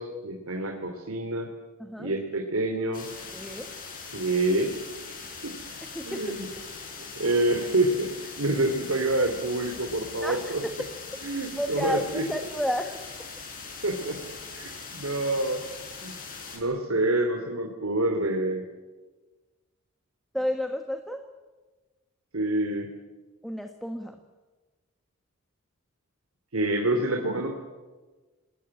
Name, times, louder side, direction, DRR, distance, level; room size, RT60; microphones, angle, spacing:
voice 1, 0.0-1.5 2.0-3.1 4.1-4.7 5.1-5.5 6.0-6.4 7.2-10.6 11.2-12.2 13.8-14.2 14.5-15.6 16.0-16.1 16.5-18.6 22.3-22.9 26.5-27.5, right 2 dB, 75° right, 4 dB, 2.8 m, -27 dB
voice 2, 1.8-2.1 3.3-3.7 5.8-6.7 10.2-10.7 11.6-12.9 20.3-21.2 23.4-24.2, equal, ahead, 6 dB, 1.3 m, -31 dB
sound 1, 2.9-16.6, left 4 dB, 40° left, 6.9 m, -41 dB
28.0 x 19.5 x 9.8 m, 1.3 s
head